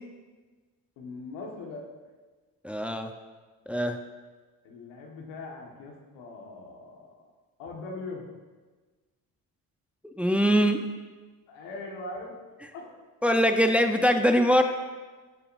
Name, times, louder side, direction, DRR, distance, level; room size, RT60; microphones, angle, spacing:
voice 1, 1.0-1.9 4.6-7.3 7.6-8.3 11.5-13.0, left 3 dB, 80° left, -1 dB, 1.8 m, -41 dB
voice 2, 2.6-3.1 3.7-4.0 10.0-10.8 13.2-14.6, equal, 5° right, 5 dB, 0.8 m, -22 dB
15.5 x 6.9 x 2.7 m, 1.3 s
supercardioid pair, 60°, 43 cm